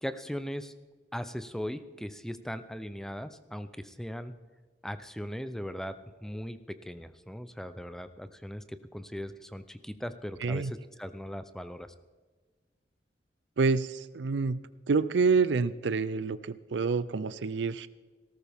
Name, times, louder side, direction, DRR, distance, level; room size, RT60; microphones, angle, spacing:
voice 1, 0.0-0.7 1.1-4.3 4.8-11.9, equal, 5° left, 11 dB, 0.6 m, -39 dB
voice 2, 10.4-10.7 13.6-14.6 14.9-17.9, right 4 dB, 80° right, 15 dB, 0.5 m, -27 dB
18.5 x 13.5 x 3.6 m, 1.4 s
head